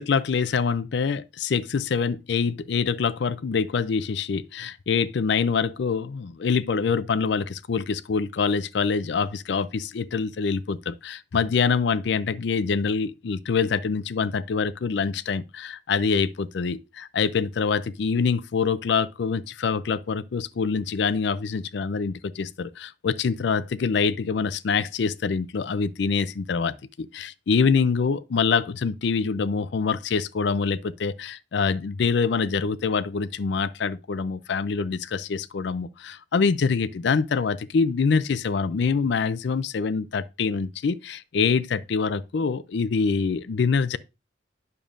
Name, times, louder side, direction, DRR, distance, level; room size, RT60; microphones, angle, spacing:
voice 1, 0.0-44.0, left 5 dB, 60° left, 0.4 m, -25 dB
8.9 x 6.7 x 2.5 m
head